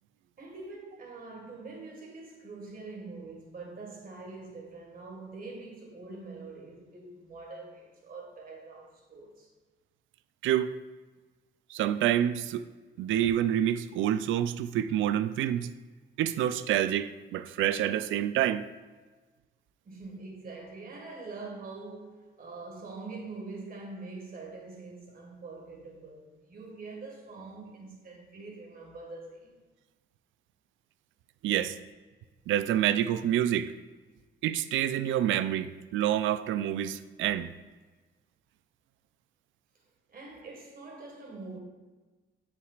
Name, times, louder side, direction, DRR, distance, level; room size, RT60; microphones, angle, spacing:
voice 1, 0.4-9.5 19.8-29.6 40.1-41.6, right 3 dB, 45° right, 1.8 m, -44 dB
voice 2, 10.4-10.7 11.7-12.6 13.0-15.7 16.2-18.7 31.4-31.8 32.5-33.7 34.4-37.5, right 11 dB, 75° right, 0.4 m, -27 dB
7.8 x 6.5 x 2.5 m
cardioid pair, 90°, 20 cm